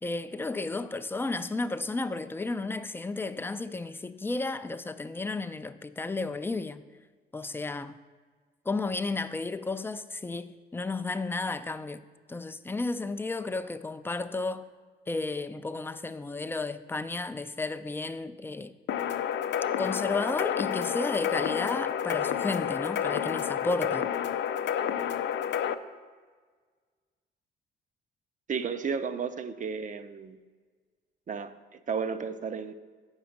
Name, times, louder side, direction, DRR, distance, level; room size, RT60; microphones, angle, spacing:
voice 1, 0.0-6.8 7.3-8.0 8.7-12.0 12.3-14.7 15.1-18.7 19.8-24.1, left 3 dB, 10° left, 0.4 m, -33 dB
sound 1, 18.9-25.7, left 9 dB, 70° left, 0.5 m, -30 dB
voice 2, 28.5-30.4 31.3-32.7, right 6 dB, 40° right, 0.5 m, -33 dB
8.1 x 5.0 x 6.4 m
cardioid pair, 90°, 20 cm